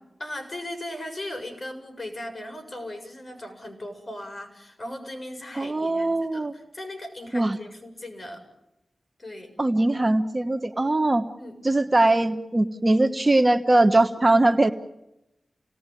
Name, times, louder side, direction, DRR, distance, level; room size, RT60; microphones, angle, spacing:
voice 1, 0.2-8.4 9.2-9.5 11.4-11.6, left 1 dB, 40° left, 6 dB, 7.0 m, -38 dB
voice 2, 5.5-6.5 7.3-7.6 9.6-11.3 11.6-14.7, right 2 dB, 30° right, 8 dB, 1.3 m, -21 dB
30.0 x 19.0 x 9.3 m, 0.92 s
cardioid pair, 55°, 0 cm